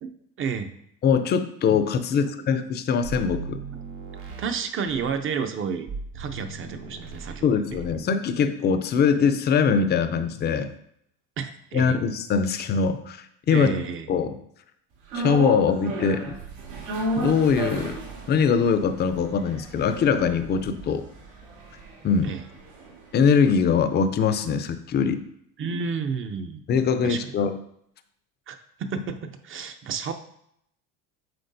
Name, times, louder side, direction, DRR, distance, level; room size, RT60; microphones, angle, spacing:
voice 1, 0.4-0.7 4.4-5.9 6.1-7.8 11.4-12.0 13.5-14.1 22.2-22.4 25.6-26.6 27.0-27.3 28.5-30.1, right 6 dB, 35° right, 8 dB, 0.7 m, -31 dB
voice 2, 1.0-3.6 7.4-10.7 11.7-13.8 14.1-14.4 15.1-16.3 17.2-18.0 18.3-21.0 22.0-22.3 23.1-25.2 26.7-27.5, left 6 dB, 30° left, 10 dB, 0.5 m, -22 dB
sound 1, 3.0-5.2 5.9-7.4 7.7-8.0, right 5 dB, 65° right, 2.3 m, -38 dB
sound 2, 15.1-23.4 23.7-23.8, right 2 dB, 80° right, 1.9 m, -34 dB
7.7 x 4.6 x 2.7 m, 0.72 s
supercardioid pair, 105°, 36 cm